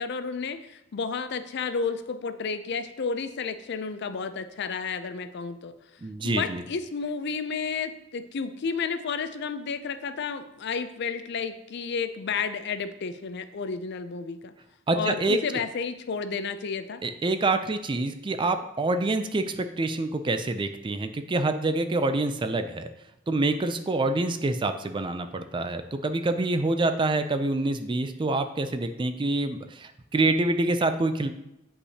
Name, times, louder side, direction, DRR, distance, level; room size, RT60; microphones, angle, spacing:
voice 1, 0.0-5.7 6.2-14.5 14.9-17.0, left 5 dB, 55° left, 11 dB, 0.4 m, -31 dB
voice 2, 6.0-6.6 14.9-15.4 17.0-22.9 23.3-31.3, right 2 dB, 25° right, 9 dB, 0.4 m, -26 dB
8.1 x 5.4 x 2.8 m, 0.89 s
head